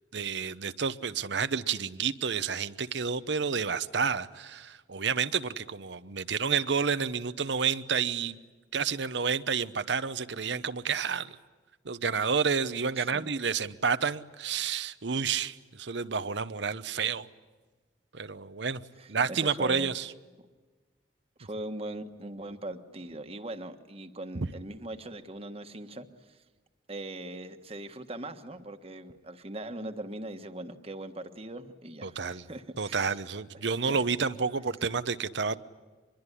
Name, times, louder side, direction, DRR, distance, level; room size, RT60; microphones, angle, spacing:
voice 1, 0.1-8.4 8.7-11.4 11.8-17.3 18.1-18.8 19.1-20.1 24.3-24.5 32.0-32.4 32.8-35.6, right 5 dB, 70° right, 0.9 m, -30 dB
voice 2, 19.0-19.9 21.4-26.4 26.9-33.2 33.9-34.0, right 1 dB, 30° right, 1.5 m, -40 dB
25.5 x 22.0 x 10.0 m
head